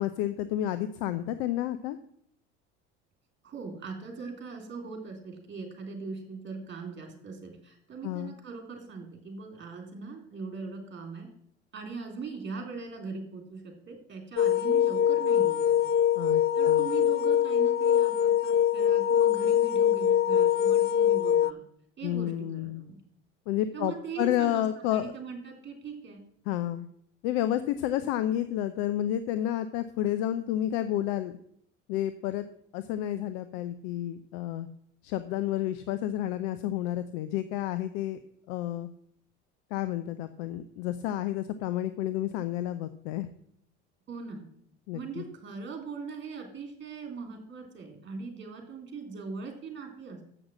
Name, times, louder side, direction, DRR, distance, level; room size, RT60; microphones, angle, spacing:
voice 1, 0.0-2.0 8.0-8.3 16.2-16.9 22.0-22.8 23.5-25.1 26.5-26.9 27.2-31.4 31.9-32.4 32.7-34.7 35.0-38.2 38.5-38.9 39.7-43.3 44.9-45.2, left 12 dB, 70° left, 12 dB, 0.7 m, -30 dB
voice 2, 3.4-11.3 11.7-15.9 16.5-21.6 22.0-22.9 23.7-24.6 24.9-26.2 44.1-44.5 44.9-50.2, right 4 dB, 30° right, 4 dB, 3.3 m, -40 dB
sound 1, 14.4-21.5, left 9 dB, 30° left, 0.4 m, -23 dB
7.9 x 6.3 x 7.5 m, 0.68 s
hypercardioid pair, 80°, 35 cm